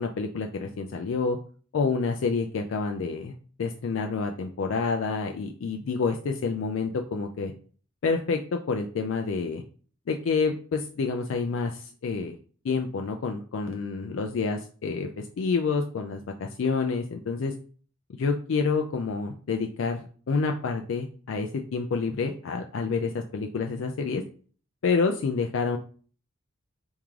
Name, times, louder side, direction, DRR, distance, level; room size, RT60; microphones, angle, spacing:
voice 1, 0.0-1.4 1.7-3.3 3.6-7.5 8.0-9.6 10.1-12.4 12.6-17.5 18.1-24.2 24.8-25.8, left 4 dB, 70° left, 4 dB, 0.4 m, -28 dB
3.6 x 3.2 x 3.5 m, 0.42 s
head